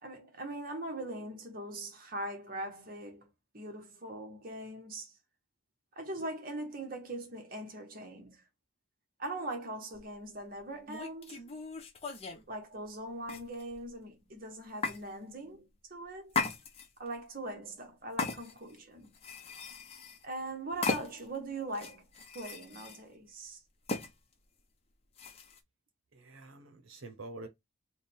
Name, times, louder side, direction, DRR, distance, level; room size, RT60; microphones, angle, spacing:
voice 1, 0.0-3.3 3.5-5.2 6.0-8.4 9.2-11.5 12.5-16.3 17.0-19.1 20.2-22.1 22.3-23.6, right 1 dB, 45° right, 1.1 m, -41 dB
sound 1, 9.9-10.1 10.9-12.4 13.2-13.9 14.8-15.0 16.3-17.1 18.2-18.8 19.1-20.2 20.8-21.4 21.7-23.0 23.9-24.1 25.2-25.6, left 4 dB, 30° left, 0.7 m, -37 dB
voice 2, 26.1-27.5, right 2 dB, 75° right, 0.9 m, -47 dB
3.6 x 2.2 x 4.2 m
head